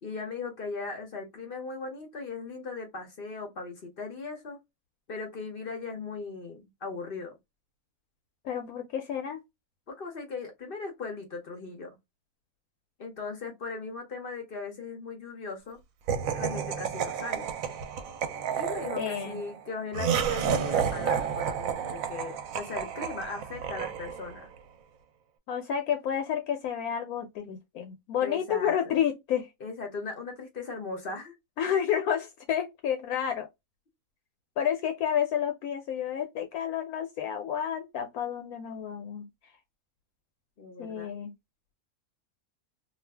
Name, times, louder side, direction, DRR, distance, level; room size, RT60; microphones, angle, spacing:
voice 1, 0.0-4.6 5.1-7.4 9.9-12.0 13.0-15.8 16.3-17.5 18.6-24.5 28.2-29.0 29.6-31.4 40.6-41.1, left 4 dB, 55° left, 0.6 m, -38 dB
voice 2, 8.4-9.4 19.0-19.4 25.5-29.5 31.6-33.5 34.6-39.3 40.8-41.3, left 9 dB, 75° left, 1.0 m, -30 dB
Laughter, 16.1-24.4, right 7 dB, 70° right, 0.9 m, -31 dB
2.5 x 2.3 x 3.2 m
omnidirectional pair, 1.6 m